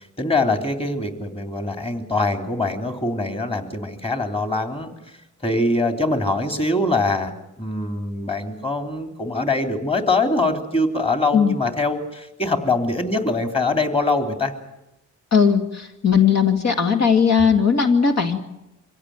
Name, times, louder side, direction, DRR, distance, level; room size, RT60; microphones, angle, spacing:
voice 1, 0.2-4.9 5.4-14.5, left 2 dB, 20° left, 5 dB, 3.3 m, -23 dB
voice 2, 15.3-18.4, left 6 dB, 55° left, 4 dB, 2.4 m, -18 dB
25.5 x 17.0 x 9.5 m, 0.95 s
cardioid pair, 100°, 31 cm